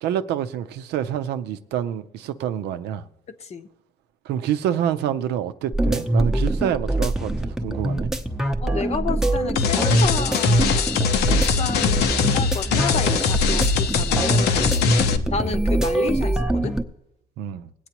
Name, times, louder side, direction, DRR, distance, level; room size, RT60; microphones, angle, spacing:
voice 1, 0.0-3.0 4.3-8.1 17.4-17.7, right 10 dB, 80° right, 0.6 m, -27 dB
voice 2, 3.3-3.7 8.6-11.0 11.3-14.7 15.3-16.8, left 5 dB, 40° left, 0.8 m, -31 dB
sound 1, 5.7-16.8, right 1 dB, 5° right, 0.7 m, -23 dB
sound 2, 9.6-15.2, left 6 dB, 75° left, 0.8 m, -22 dB
20.5 x 8.3 x 3.0 m
cardioid pair, 110°, 17 cm